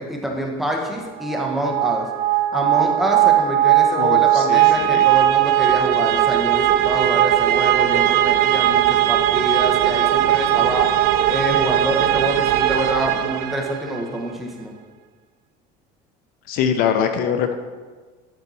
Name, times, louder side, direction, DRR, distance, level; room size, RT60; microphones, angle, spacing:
voice 1, 0.0-2.1 2.5-10.9 11.3-14.7, equal, ahead, -1 dB, 1.0 m, -26 dB
sound 1, 1.2-14.0, right 12 dB, 60° right, 0.5 m, -18 dB
voice 2, 4.0-5.0 16.5-17.6, left 8 dB, 55° left, 7 dB, 0.6 m, -23 dB
11.5 x 4.4 x 4.0 m, 1.4 s
cardioid pair, 155°, 18 cm